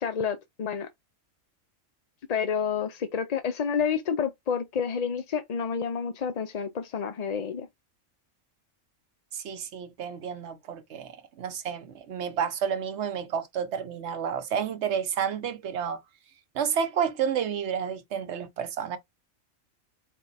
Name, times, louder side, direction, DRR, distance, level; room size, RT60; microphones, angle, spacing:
voice 1, 0.0-0.9 2.3-7.7, left 6 dB, 55° left, 0.4 m, -29 dB
voice 2, 9.3-16.0 16.5-19.0, right 7 dB, 65° right, 1.0 m, -30 dB
4.5 x 2.3 x 4.0 m
omnidirectional pair, 1.3 m